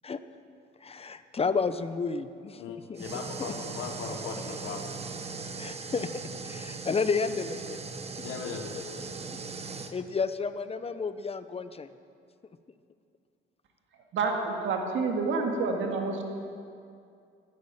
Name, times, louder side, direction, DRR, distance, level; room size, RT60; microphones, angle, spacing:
voice 1, 0.8-2.6 2.9-3.0 5.6-6.1 6.4-7.8 8.1-8.2 9.9-11.9, left 5 dB, 30° left, 12 dB, 0.9 m, -31 dB
voice 2, 2.6-5.0 8.2-9.3, left 6 dB, 90° left, 4 dB, 1.4 m, -39 dB
sound 1, 3.0-9.9, right 4 dB, 30° right, 1.2 m, -39 dB
voice 3, 14.1-16.2, right 4 dB, 75° right, 1 dB, 2.2 m, -28 dB
12.5 x 11.0 x 9.7 m, 2.4 s
cardioid pair, 90°, 20 cm